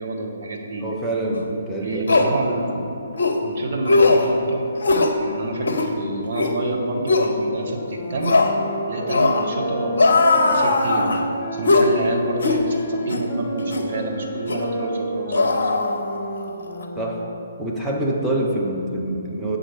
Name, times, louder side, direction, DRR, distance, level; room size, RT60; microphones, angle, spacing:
voice 1, 0.0-0.9 1.8-2.9 3.4-4.7 5.2-8.4 8.9-11.2 11.5-15.8, right 2 dB, 50° right, 1 dB, 0.9 m, -28 dB
voice 2, 0.8-2.3 17.0-17.3 17.6-19.6, right 1 dB, 5° right, -3 dB, 0.7 m, -25 dB
sound 1, 1.4-1.5 2.1-2.3 3.2-3.4 3.9-4.3 4.8-5.2 5.6-5.9 6.3-6.5 7.1-7.3 8.2-8.5 9.1-9.5 10.0-11.2 11.7-11.9 12.4-12.6 13.1-13.3 13.7-13.9 14.5-14.7 15.3-16.4 16.7-16.8, left 3 dB, 60° left, 0.6 m, -19 dB
sound 2, 7.7-17.7, equal, 25° left, 1.1 m, -31 dB
7.6 x 3.9 x 4.5 m, 2.7 s
figure-of-eight pair, 130°, 0 cm